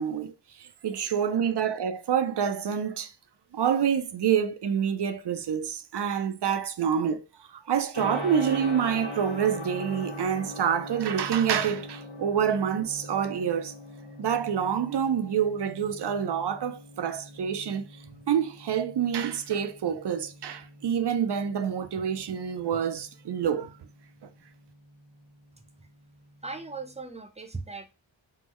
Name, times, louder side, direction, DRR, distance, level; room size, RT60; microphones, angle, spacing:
voice 1, 0.0-3.1 3.5-13.7 14.2-17.8 18.3-23.8, right 8 dB, 60° right, 0.5 m, -27 dB
Gong, 7.9-26.9, left 1 dB, 65° left, 1.3 m, -42 dB
voice 2, 26.4-27.9, right 3 dB, 15° right, 0.6 m, -38 dB
3.7 x 2.0 x 3.0 m
wide cardioid pair, 50°, 47 cm